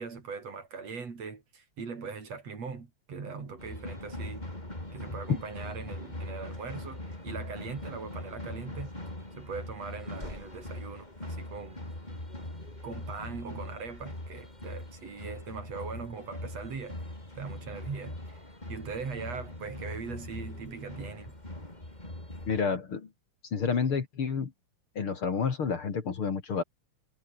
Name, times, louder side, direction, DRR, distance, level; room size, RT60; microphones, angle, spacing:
voice 1, 0.0-4.5 4.9-8.9 9.4-11.8 12.8-17.0 17.4-18.4 18.7-21.4, right 5 dB, 60° right, 5.1 m, -40 dB
sound 1, 3.6-22.6, left 1 dB, 15° left, 5.2 m, -41 dB
voice 2, 22.5-23.1 23.5-24.5 25.0-26.6, left 6 dB, 45° left, 2.9 m, -29 dB
omnidirectional pair, 3.4 m